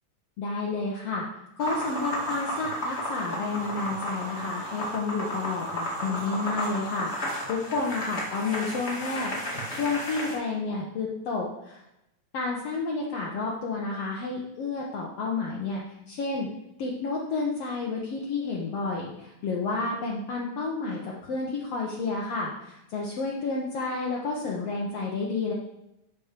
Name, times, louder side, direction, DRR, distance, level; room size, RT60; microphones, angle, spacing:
voice 1, 0.4-1.3 1.6-9.3 9.7-11.8 12.3-15.8 16.1-16.5 16.8-25.5, left 3 dB, 65° left, -3 dB, 1.9 m, -30 dB
sound 1, 1.6-10.4, equal, 25° left, 1.9 m, -33 dB
11.5 x 4.3 x 5.1 m, 0.87 s
omnidirectional pair, 3.4 m